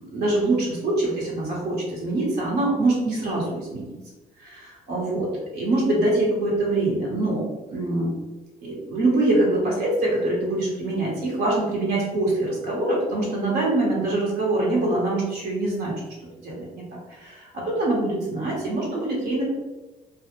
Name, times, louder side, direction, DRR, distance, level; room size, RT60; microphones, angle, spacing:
voice 1, 0.1-3.9 4.4-8.1 8.6-15.9 16.4-16.8 17.1-19.5, right 2 dB, 75° right, -4 dB, 1.1 m, -24 dB
2.2 x 2.0 x 3.0 m, 1.1 s
cardioid pair, 110°, 17 cm